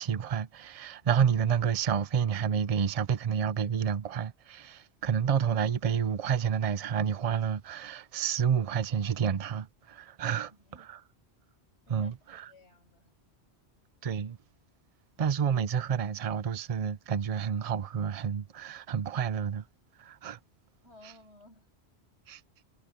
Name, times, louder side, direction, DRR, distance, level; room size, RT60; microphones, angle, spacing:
voice 1, 0.0-10.5 10.9-11.0 11.9-12.5 14.0-14.4 15.2-19.6 20.0-20.4 22.3-22.4, right 7 dB, 40° right, 0.7 m, -29 dB
voice 2, 10.2-10.9 11.9-13.1 20.8-21.7, left 2 dB, 90° left, 7.0 m, -57 dB
omnidirectional pair, 1.1 m